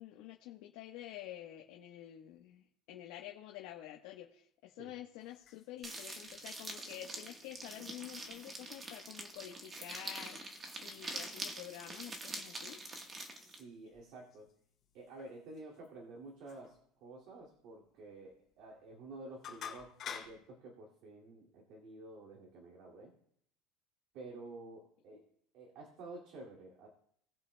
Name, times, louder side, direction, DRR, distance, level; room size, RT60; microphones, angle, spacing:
voice 1, 0.0-12.8 25.1-25.2, left 13 dB, 60° left, 0 dB, 1.1 m, -49 dB
sound 1, 5.1-20.5, left 8 dB, 30° left, 3.2 m, -55 dB
sound 2, 5.8-13.6, right 2 dB, 15° right, 1.2 m, -45 dB
voice 2, 13.4-14.5 14.9-23.1 24.1-25.2 25.5-26.9, right 2 dB, 50° right, -2 dB, 2.3 m, -51 dB
20.0 x 7.7 x 2.2 m, 0.67 s
cardioid pair, 175°, 0 cm